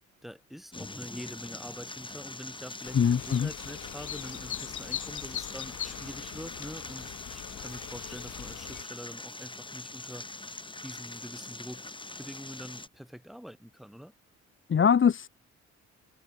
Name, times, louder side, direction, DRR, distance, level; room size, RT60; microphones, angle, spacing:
voice 1, 0.2-11.9 12.2-14.1, equal, ahead, 5.9 m, -45 dB
sound 1, 0.7-12.9, left 2 dB, 15° left, 5.3 m, -43 dB
sound 2, 2.8-8.8, left 12 dB, 75° left, 3.4 m, -41 dB
voice 2, 2.9-3.5 14.7-15.3, left 7 dB, 40° left, 1.5 m, -22 dB
cardioid pair, 90°, 30 cm